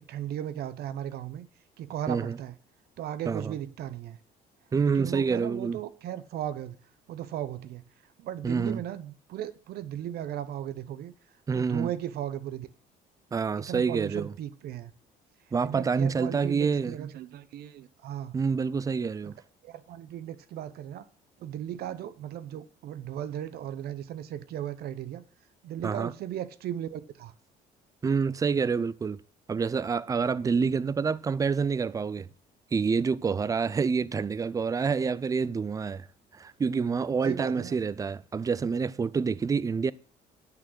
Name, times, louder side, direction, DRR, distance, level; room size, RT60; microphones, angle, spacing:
voice 1, 0.1-1.5 1.8-2.6 3.0-4.2 4.8-6.8 7.1-7.8 8.2-11.1 11.5-12.7 13.6-14.9 15.6-18.4 19.2-19.3 19.6-21.1 21.4-25.2 25.6-27.3 30.4-30.8 37.2-37.8, right 11 dB, 70° right, 0.8 m, -36 dB
voice 2, 2.1-2.4 3.3-3.5 4.7-5.8 8.4-8.8 11.5-11.9 13.3-14.3 15.5-17.0 18.3-19.4 25.8-26.1 28.0-29.2 29.5-32.3 32.7-36.1 36.3-39.9, right 5 dB, 20° right, 0.4 m, -27 dB
8.9 x 6.3 x 6.2 m
cardioid pair, 110°, 17 cm